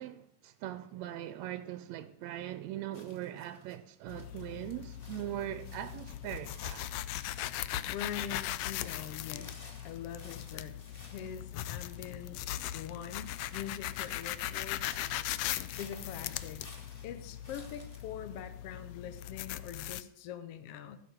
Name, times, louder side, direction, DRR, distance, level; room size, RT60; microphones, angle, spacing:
voice 1, 0.0-6.9, right 13 dB, 80° right, 1.6 m, -41 dB
sound 1, 2.9-3.8 4.1-18.1, left 2 dB, 25° left, 1.3 m, -56 dB
sound 2, 4.1-20.0, left 13 dB, 90° left, 1.4 m, -39 dB
voice 2, 7.8-10.7 11.1-12.4 12.7-15.1 15.8-16.6 17.0-21.0, left 9 dB, 70° left, 1.4 m, -43 dB
15.5 x 5.7 x 7.9 m
omnidirectional pair, 3.6 m